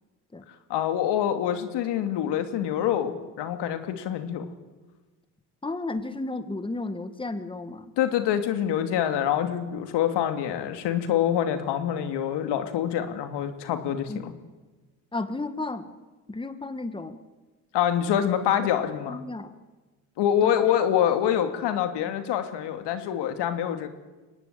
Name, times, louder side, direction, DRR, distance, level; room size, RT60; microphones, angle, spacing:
voice 1, 0.7-4.5 8.0-14.3 17.7-19.2 20.2-23.9, left 10 dB, 70° left, 8 dB, 2.7 m, -26 dB
voice 2, 5.6-7.9 14.1-14.2 15.1-15.9 16.3-17.2 19.1-19.5 20.4-20.5, left 2 dB, 10° left, 10 dB, 1.8 m, -33 dB
23.5 x 18.5 x 8.9 m, 1.2 s
supercardioid pair, 80°, 43 cm